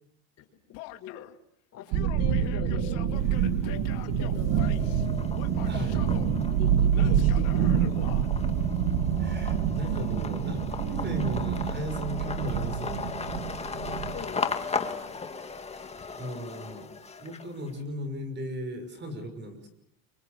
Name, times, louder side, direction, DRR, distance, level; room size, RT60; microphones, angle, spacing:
Male speech man speaking / Yell, 0.7-1.4 1.8-5.1 5.3-6.3 6.9-8.3, left 16 dB, 70° left, 2.4 m, -44 dB
voice 1, 1.7-5.1 5.9-6.0 6.5-7.9 14.1-15.1, left 8 dB, 35° left, 5 dB, 5.7 m, -43 dB
sound 1, 1.9-14.2, right 8 dB, 65° right, 2.3 m, -27 dB
sound 2, 3.2-3.8 4.2-17.7, left 5 dB, 15° left, 2.1 m, -37 dB
voice 2, 5.6-6.0 9.2-13.5 16.1-16.9 17.2-19.7, equal, 25° right, 10 dB, 5.9 m, -37 dB
29.5 x 25.5 x 6.7 m, 0.73 s
cardioid pair, 140°, 42 cm